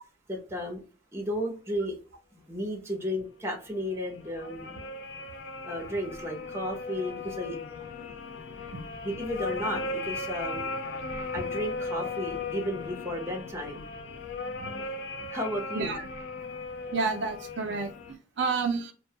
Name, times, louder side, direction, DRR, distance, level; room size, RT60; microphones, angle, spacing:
voice 1, 0.3-0.8 1.1-2.0 2.5-4.8 5.6-7.6 9.0-10.7 11.3-13.9 15.3-16.0, equal, 15° right, 1 dB, 0.7 m, -33 dB
sound 1, 3.8-18.1, left 3 dB, 70° left, 0.4 m, -37 dB
voice 2, 16.9-18.9, right 4 dB, 70° right, 4 dB, 0.5 m, -30 dB
2.1 x 2.1 x 2.7 m, 0.35 s
head